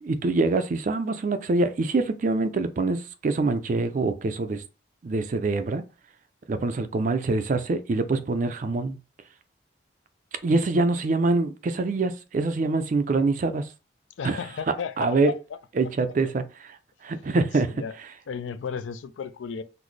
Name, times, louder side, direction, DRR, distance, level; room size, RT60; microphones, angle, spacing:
voice 1, 0.0-4.6 5.0-5.9 6.5-8.9 10.4-13.7 14.2-14.4 15.0-15.3 15.8-16.8 17.0-17.8, right 3 dB, 40° right, 0.3 m, -25 dB
voice 2, 14.2-15.3 15.8-15.9 17.7-18.0 18.3-19.6, left 6 dB, 75° left, 0.3 m, -34 dB
3.9 x 2.0 x 3.2 m
head